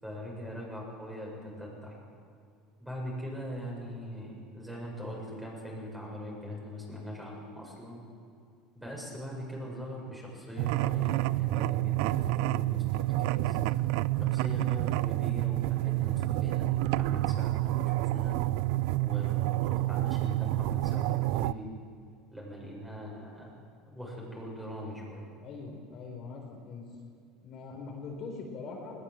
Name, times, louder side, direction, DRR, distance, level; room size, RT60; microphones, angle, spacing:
voice 1, 0.0-2.0 2.8-8.0 8.7-13.6 14.2-18.4 19.0-21.7 22.3-25.3, equal, 5° right, -3 dB, 7.3 m, -41 dB
sound 1, 10.6-21.5, right 17 dB, 70° right, 0.5 m, -28 dB
voice 2, 25.4-26.8 27.4-29.0, left 4 dB, 40° left, 0 dB, 4.3 m, -42 dB
20.5 x 19.5 x 7.8 m, 2.4 s
cardioid pair, 140°, 0 cm